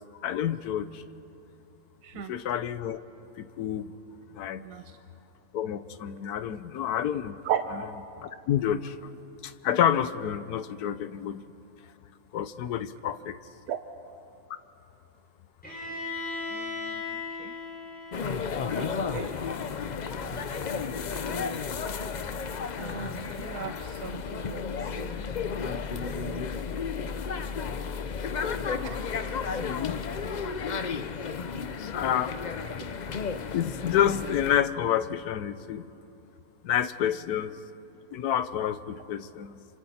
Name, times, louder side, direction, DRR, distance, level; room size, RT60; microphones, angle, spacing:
voice 1, 0.2-1.0 2.1-3.0 3.4-3.9 4.3-4.6 5.5-7.4 8.2-9.1 9.4-11.4 12.3-13.4 28.2-28.3 29.5-30.0 30.6-30.9 31.9-32.3 33.3-35.8 36.6-37.5 38.1-39.7, left 10 dB, 85° left, 13 dB, 1.3 m, -29 dB
voice 2, 2.0-2.3 4.6-4.8 7.4-7.6 13.7-13.8 16.5-17.6 18.7-19.4 20.2-21.5 22.8-24.7 25.0-25.3 26.1-26.5 28.8-29.0 30.9-31.2 32.6-32.7, right 10 dB, 85° right, 7 dB, 1.3 m, -37 dB
Bowed string instrument, 15.6-19.5, left 4 dB, 5° left, 6.8 m, -38 dB
sound 1, 18.1-34.6, left 5 dB, 60° left, 0.4 m, -33 dB
29.5 x 25.5 x 4.3 m, 2.8 s
omnidirectional pair, 1.6 m